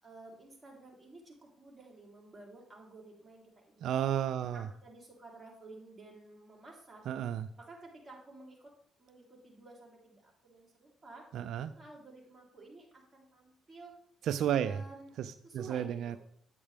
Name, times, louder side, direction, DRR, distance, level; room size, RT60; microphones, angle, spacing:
voice 1, 0.0-3.9 4.5-7.0 7.6-8.7 9.0-11.3 11.6-14.0 14.6-15.1 15.4-16.2, right 2 dB, 20° right, -2 dB, 3.4 m, -52 dB
voice 2, 3.8-4.7 7.1-7.5 11.3-11.7 14.2-14.8 15.2-16.2, right 10 dB, 75° right, 12 dB, 0.4 m, -32 dB
8.9 x 8.6 x 3.4 m, 0.63 s
cardioid pair, 90°, 0 cm